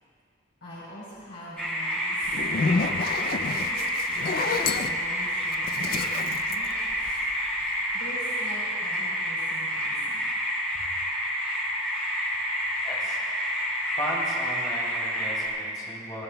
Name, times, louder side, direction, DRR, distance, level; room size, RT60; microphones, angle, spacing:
voice 1, 0.6-3.8 4.3-7.2 7.9-10.3 10.7-10.9, equal, 80° left, -9 dB, 3.9 m, -43 dB
sound 1, 1.6-15.5, equal, 5° left, 3.8 m, -29 dB
Zipper (clothing), 2.2-7.5, left 4 dB, 50° left, 0.4 m, -30 dB
voice 2, 12.8-13.2 14.0-16.2, equal, 20° left, -6 dB, 3.0 m, -35 dB
21.5 x 16.5 x 2.3 m, 2.3 s
head